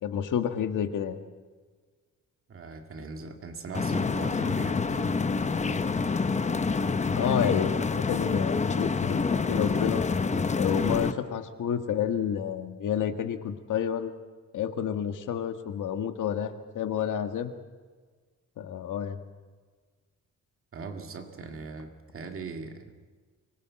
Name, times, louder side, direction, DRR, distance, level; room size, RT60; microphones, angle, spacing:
voice 1, 0.0-1.2 7.2-10.0 10.5-14.1 14.5-17.5 18.6-19.2, left 8 dB, 70° left, 7 dB, 1.8 m, -30 dB
voice 2, 2.5-5.1 20.7-23.0, right 4 dB, 40° right, 4 dB, 2.3 m, -40 dB
sound 1, 3.7-11.1, left 4 dB, 20° left, 0.8 m, -27 dB
24.5 x 19.0 x 7.6 m, 1.5 s
cardioid pair, 160°, 32 cm